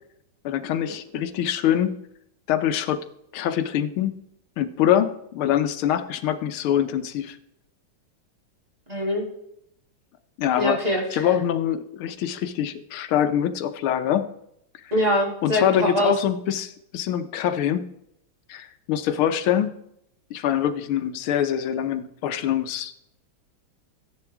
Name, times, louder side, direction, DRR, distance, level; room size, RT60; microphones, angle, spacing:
voice 1, 0.5-2.0 2.5-3.1 3.3-4.2 4.6-7.4 10.4-10.8 11.1-14.3 15.4-17.9 18.5-19.7 20.3-22.9, left 10 dB, 90° left, 10 dB, 1.6 m, -24 dB
voice 2, 8.9-9.2 10.6-11.2 14.9-16.1, equal, 20° right, -2 dB, 2.6 m, -23 dB
14.0 x 10.0 x 3.5 m, 0.76 s
omnidirectional pair, 2.3 m